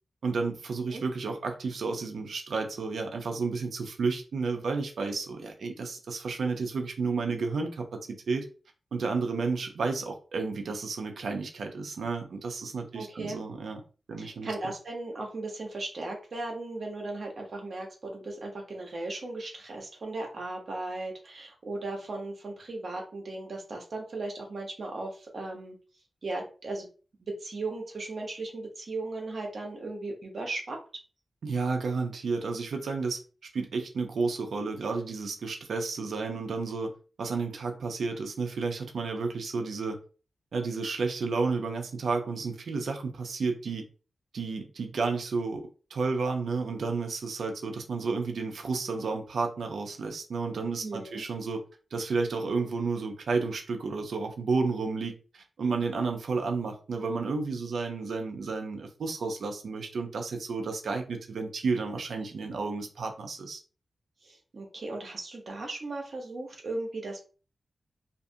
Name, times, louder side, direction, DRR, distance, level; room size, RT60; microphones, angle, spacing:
voice 1, 0.2-8.5 8.9-13.8 14.1-14.5 31.4-33.2 33.5-36.9 37.2-40.0 40.5-43.9 44.3-45.6 45.9-51.6 51.9-63.6, right 4 dB, 85° right, 0.5 m, -31 dB
voice 2, 12.9-13.4 14.2-25.8 26.2-26.9 27.2-30.8 50.8-51.2 64.2-67.2, right 2 dB, 65° right, 0.9 m, -37 dB
2.5 x 2.4 x 2.7 m
cardioid pair, 70°, 0 cm